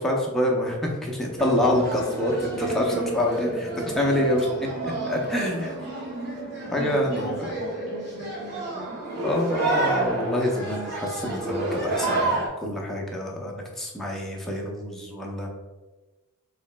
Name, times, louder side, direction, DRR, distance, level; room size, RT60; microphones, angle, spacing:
voice 1, 0.0-3.7 3.9-4.5 4.8-5.8 6.7-7.4 9.2-15.5, left 1 dB, ahead, -2 dB, 0.5 m, -26 dB
sound 1, 1.4-12.5, right 2 dB, 50° right, 1.3 m, -30 dB
voice 2, 5.8-6.3 6.8-9.0, right 1 dB, 30° right, -12 dB, 1.0 m, -38 dB
3.1 x 2.8 x 3.2 m, 1.2 s
head